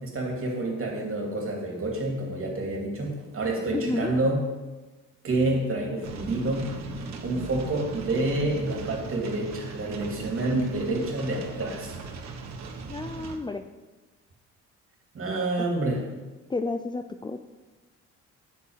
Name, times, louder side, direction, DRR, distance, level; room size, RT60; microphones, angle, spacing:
voice 1, 0.0-4.5 5.2-6.7 7.2-12.0 15.1-16.0, right 2 dB, 45° right, 0 dB, 2.8 m, -28 dB
voice 2, 3.7-4.1 12.9-13.6 15.6-15.7 16.5-17.4, left 3 dB, 15° left, 8 dB, 0.5 m, -31 dB
sound 1, 6.0-13.4, right 4 dB, 60° right, 1.3 m, -38 dB
8.5 x 6.4 x 7.3 m, 1.2 s
cardioid pair, 90°, 30 cm